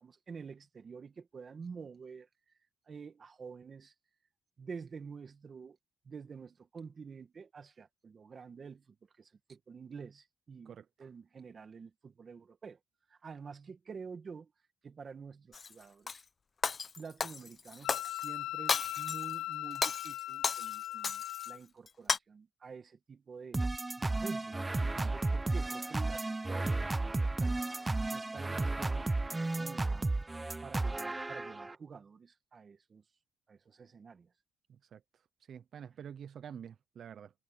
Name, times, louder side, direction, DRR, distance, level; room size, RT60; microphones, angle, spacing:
voice 1, 0.0-2.3 2.9-3.9 4.6-5.8 6.1-8.8 9.2-12.8 13.1-14.5 14.8-16.2 17.0-23.6 24.0-27.6 28.1-30.1 30.6-33.0 33.5-34.3, right 5 dB, 40° right, 1.9 m, -49 dB
Shatter, 15.5-16.2 16.6-18.3 18.7-19.3 19.7-21.5 21.9-22.2, left 5 dB, 40° left, 1.0 m, -34 dB
Wind instrument woodwind instrument, 17.8-21.6, left 15 dB, 90° left, 0.3 m, -39 dB
sound 1, 23.5-31.8, right 2 dB, 15° right, 0.9 m, -33 dB
voice 2, 24.8-25.1 34.9-35.0 35.5-37.3, right 8 dB, 60° right, 0.7 m, -47 dB
cardioid pair, 90°, 0 cm